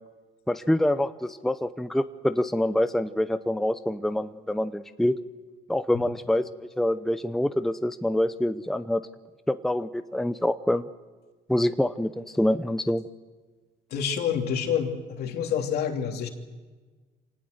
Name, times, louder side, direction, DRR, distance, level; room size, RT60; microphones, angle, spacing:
voice 1, 0.5-5.2 5.7-6.5 6.8-9.0 9.5-10.9 11.5-13.1, left 1 dB, ahead, 11 dB, 0.7 m, -26 dB
voice 2, 13.9-16.3, left 8 dB, 70° left, 4 dB, 2.9 m, -28 dB
26.0 x 18.5 x 7.9 m, 1.3 s
cardioid pair, 110°, 17 cm